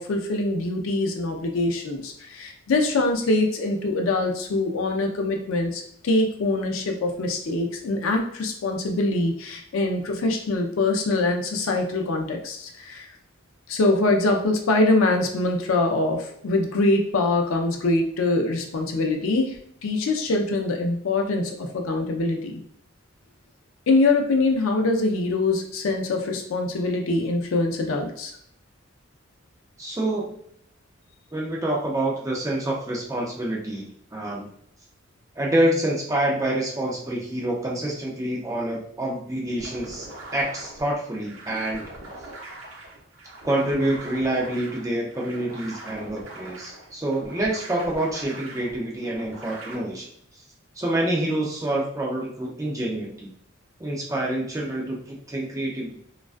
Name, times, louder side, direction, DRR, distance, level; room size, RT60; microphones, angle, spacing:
voice 1, 0.0-13.1 13.7-22.5 23.9-28.3, left 2 dB, 80° left, 3 dB, 0.4 m, -24 dB
voice 2, 29.8-30.3 31.3-34.5 35.4-40.1 40.3-41.8 43.4-50.1 50.8-53.3 53.8-56.0, right 1 dB, 15° right, -3 dB, 0.4 m, -27 dB
sound 1, 39.6-49.7, right 2 dB, 75° right, 0.7 m, -42 dB
2.3 x 2.2 x 2.4 m, 0.68 s
head